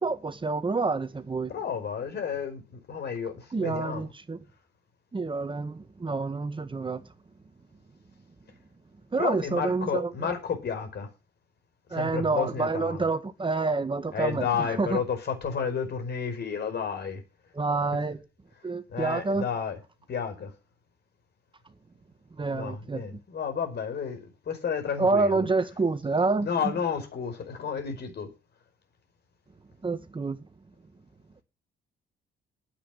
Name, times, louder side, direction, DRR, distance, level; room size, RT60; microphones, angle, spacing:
voice 1, 0.0-1.5 3.5-4.4 5.1-7.1 9.1-10.1 11.9-15.0 17.5-18.2 18.6-19.5 22.4-23.2 25.0-26.7 29.8-30.4, right 3 dB, 25° right, 1.5 m, -28 dB
voice 2, 1.5-4.1 9.2-11.1 11.9-13.1 14.1-17.2 18.9-19.8 20.1-20.5 22.5-25.4 26.4-28.3, left 6 dB, 55° left, 5.0 m, -31 dB
10.0 x 8.4 x 7.2 m
cardioid pair, 90°, 20 cm